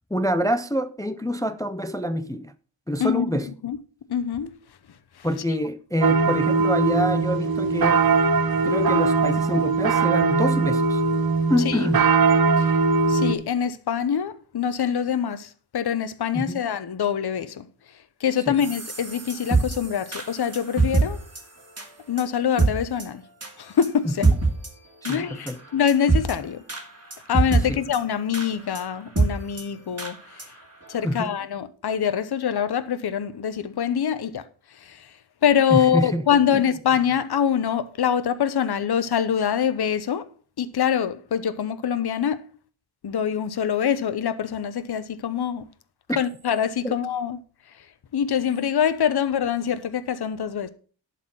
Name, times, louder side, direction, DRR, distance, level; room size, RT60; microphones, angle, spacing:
voice 1, 0.1-2.5 2.9-3.5 5.2-8.0 8.6-11.0 11.5-12.1 16.3-16.6 18.5-18.6 24.1-24.4 25.0-25.6 27.7-27.8 31.0-31.3 35.7-36.3 36.5-36.6 46.1-46.2 46.8-47.0, equal, 10° left, 0.4 m, -26 dB
voice 2, 3.0-3.3 3.6-3.8 4.1-4.5 11.6-11.8 12.6-12.7 13.1-17.7 18.2-21.2 22.1-23.2 23.6-24.3 25.0-26.6 27.3-30.2 30.9-34.4 34.9-35.0 35.4-40.3 40.6-42.4 43.0-45.6 46.2-47.4 48.1-50.7, left 8 dB, 55° left, 0.8 m, -24 dB
sound 1, 6.0-13.3, right 4 dB, 50° right, 0.8 m, -20 dB
sound 2, 18.6-21.1 21.4-21.5 21.8-21.9 22.2-22.3 22.6-22.7 23.0-23.1 23.4-23.5 23.8-23.9 24.2-24.7 25.0-25.2 25.5-25.6 25.9-26.3 26.7-26.8 27.1-27.6 27.9-28.0 28.3-28.5 28.7-28.8 29.2-29.3 29.6-29.7 30.0-30.1 30.4-30.5 30.9-31.0, right 3 dB, 30° right, 2.0 m, -22 dB
11.0 x 4.2 x 6.0 m
wide cardioid pair, 105°, 48 cm